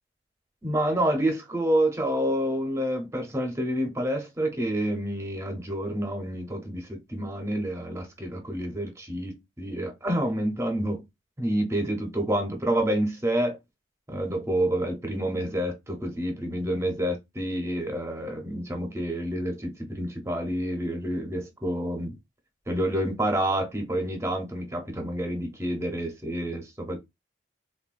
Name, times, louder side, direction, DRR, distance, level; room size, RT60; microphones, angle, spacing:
voice 1, 0.6-11.0 11.4-13.6 14.1-22.2 22.7-27.0, right 1 dB, 15° right, 0.6 m, -28 dB
3.3 x 2.2 x 2.4 m
head